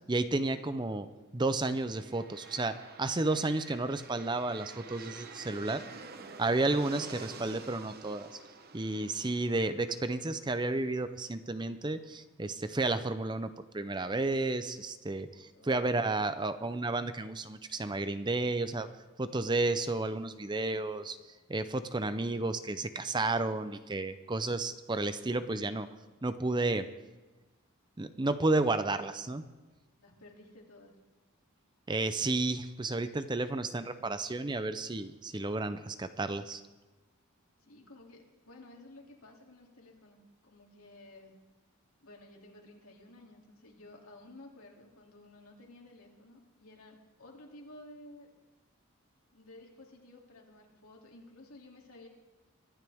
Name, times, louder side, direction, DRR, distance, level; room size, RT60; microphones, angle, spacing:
voice 1, 0.0-1.1 1.3-5.8 6.4-8.4 8.7-18.9 19.2-21.2 21.5-25.9 26.2-26.9 28.0-29.4 31.9-36.6, right 2 dB, 20° right, 11 dB, 0.6 m, -32 dB
sound 1, 1.8-11.6, right 4 dB, 45° right, 0.9 m, -49 dB
voice 2, 5.5-6.0 15.5-16.0 30.0-30.9 37.6-41.3 42.0-48.3 49.3-52.1, left 1 dB, 80° left, 0 dB, 2.8 m, -54 dB
24.5 x 12.5 x 3.5 m, 1.2 s
head